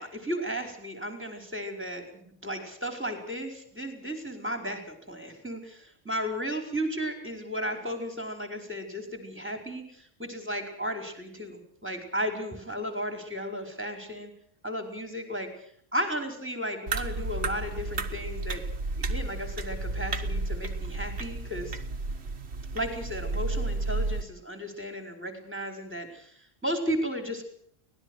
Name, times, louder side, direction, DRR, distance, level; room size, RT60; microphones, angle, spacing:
voice 1, 0.0-14.3 14.6-15.5 15.9-18.6 18.9-21.8 22.7-27.4, equal, 10° right, 6 dB, 4.8 m, -34 dB
sound 1, 16.9-24.2, right 3 dB, 60° right, 1.8 m, -32 dB
24.0 x 19.0 x 6.4 m, 0.63 s
omnidirectional pair, 1.3 m